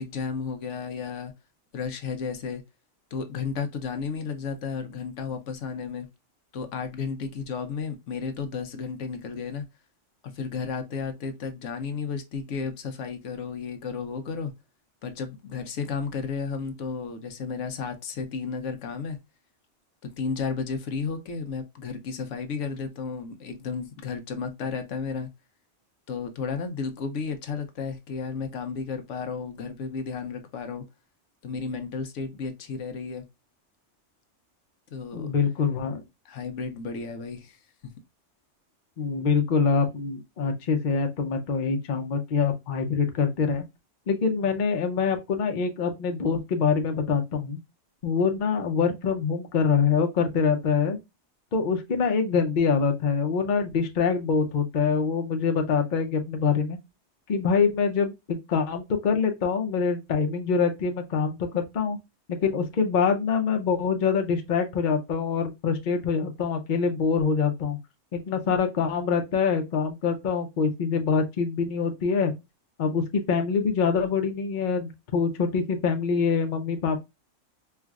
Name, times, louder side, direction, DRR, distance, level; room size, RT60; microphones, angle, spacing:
voice 1, 0.0-1.3 1.7-2.6 3.1-6.1 6.5-9.6 10.2-14.5 15.0-19.2 20.0-25.3 26.1-30.9 31.4-33.2 34.9-35.3 36.2-37.6, left 5 dB, 80° left, 1.0 m, -33 dB
voice 2, 35.1-36.0 39.0-43.6 44.1-47.6 48.0-51.0 51.5-56.8 57.3-62.0 62.4-67.8 68.1-72.3 72.8-77.0, left 5 dB, 50° left, 0.7 m, -25 dB
4.4 x 2.4 x 2.3 m
omnidirectional pair, 1.2 m